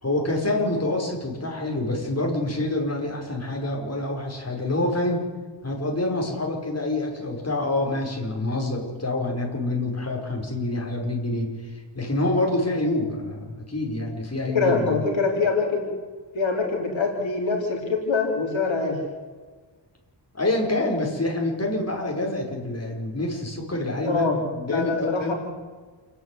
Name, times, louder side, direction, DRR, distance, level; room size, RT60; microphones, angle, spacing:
voice 1, 0.0-5.2 5.6-15.0 20.3-25.3, left 2 dB, 35° left, 0 dB, 5.8 m, -27 dB
voice 2, 14.5-15.9 16.3-19.0 24.0-24.3 24.7-25.3, left 4 dB, 80° left, 1 dB, 3.8 m, -24 dB
28.5 x 10.0 x 9.6 m, 1.4 s
wide cardioid pair, 70°, 45 cm